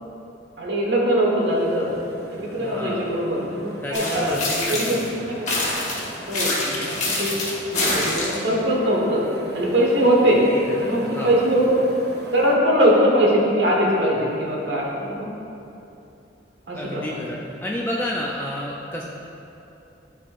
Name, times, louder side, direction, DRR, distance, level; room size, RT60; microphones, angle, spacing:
voice 1, 0.6-1.9 2.3-5.5 6.3-7.4 7.7-9.2 9.5-10.5 10.8-11.8 12.3-15.3 16.7-17.0, equal, 85° right, -3 dB, 1.3 m, -21 dB
sound 1, 1.4-12.5, right 1 dB, 65° right, 0.7 m, -41 dB
voice 2, 2.6-3.1 3.8-5.3 10.3-11.4 16.7-19.0, left 1 dB, 10° left, -3 dB, 0.4 m, -31 dB
sound 2, 3.9-5.1 5.5-8.5, left 2 dB, 40° left, 1.4 m, -25 dB
12.0 x 4.3 x 2.5 m, 2.9 s
head